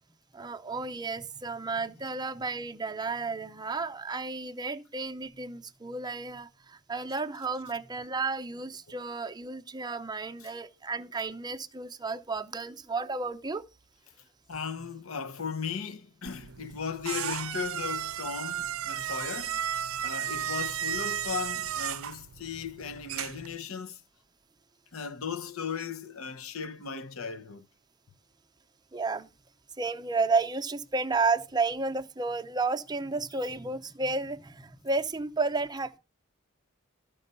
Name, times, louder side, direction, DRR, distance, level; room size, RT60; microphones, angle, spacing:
voice 1, 0.3-13.6 28.9-29.3 29.8-36.0, right 4 dB, 20° right, 0.6 m, -32 dB
voice 2, 14.5-19.7 20.0-24.0 24.9-27.7, left 6 dB, 90° left, 0.9 m, -37 dB
sound 1, 16.3-23.5, right 10 dB, 85° right, 0.5 m, -34 dB
13.0 x 5.2 x 5.3 m
head